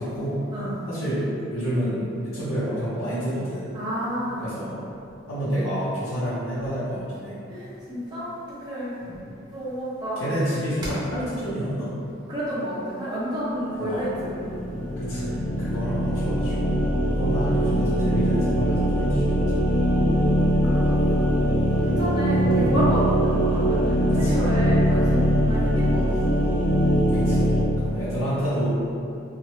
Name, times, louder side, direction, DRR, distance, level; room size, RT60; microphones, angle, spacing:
voice 1, 0.0-0.4 0.9-3.7 4.4-4.8 5.3-7.3 9.0-9.3 10.2-11.9 13.8-14.1 15.0-19.2 21.8-22.0 22.4-22.8 24.1-24.5 27.0-27.5 27.8-28.7, equal, 80° left, -12 dB, 0.8 m, -29 dB
voice 2, 3.7-4.4 7.5-9.0 9.5-10.3 12.3-14.6 15.6-15.8 17.3-17.4 20.0-21.2 21.8-26.4 27.7-28.0, equal, 20° right, -10 dB, 0.5 m, -30 dB
sound 1, 13.8-27.6, equal, 40° left, 0.6 m, -22 dB
2.8 x 2.3 x 3.0 m, 2.7 s
head